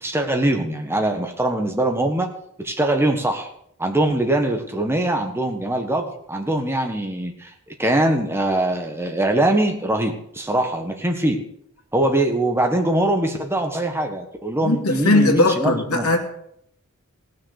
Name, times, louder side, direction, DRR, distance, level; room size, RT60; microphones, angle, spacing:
voice 1, 0.0-2.3 2.6-3.5 3.8-7.5 7.8-11.4 11.9-16.1, right 1 dB, 10° right, 4 dB, 1.5 m, -22 dB
voice 2, 14.6-16.2, left 2 dB, 70° left, 3 dB, 2.2 m, -19 dB
17.0 x 6.5 x 6.6 m, 0.71 s
head